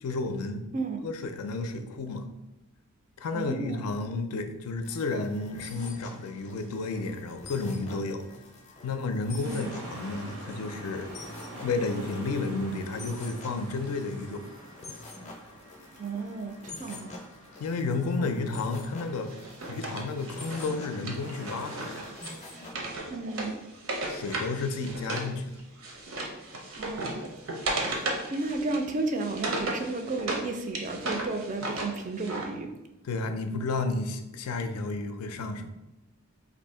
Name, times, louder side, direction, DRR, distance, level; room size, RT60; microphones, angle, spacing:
voice 1, 0.0-0.6 1.0-2.3 3.2-8.3 8.8-11.1 11.6-14.4 16.9-17.0 17.6-19.3 19.7-22.0 24.1-25.5 33.0-35.7, left 3 dB, 85° left, 7 dB, 0.4 m, -32 dB
voice 2, 3.3-3.8 9.3-9.7 16.0-17.2 18.2-18.3 23.1-23.6 26.8-27.2 28.3-32.7, right 3 dB, 35° right, 5 dB, 0.3 m, -33 dB
sound 1, 4.8-22.7, left 2 dB, 30° left, 0.5 m, -47 dB
sound 2, 9.4-22.1, right 1 dB, 85° right, 0.9 m, -46 dB
Wood, 19.3-25.3 25.6-30.4 30.7-32.5, right 2 dB, 65° right, 0.6 m, -35 dB
2.7 x 2.6 x 4.3 m, 0.97 s
head